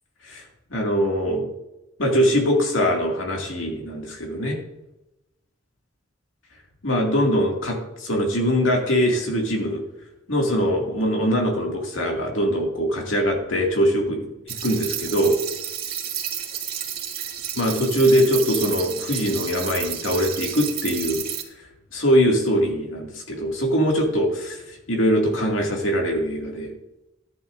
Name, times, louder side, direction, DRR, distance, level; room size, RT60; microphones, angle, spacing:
voice 1, 0.7-1.5 2.0-4.6 6.8-9.8 10.3-14.2 14.6-15.4 17.6-21.2 21.9-24.6 24.9-26.7, equal, 85° left, 0 dB, 2.3 m, -22 dB
sound 1, 14.5-21.4, right 9 dB, 55° right, 2.2 m, -31 dB
14.5 x 10.5 x 2.6 m, 0.93 s
head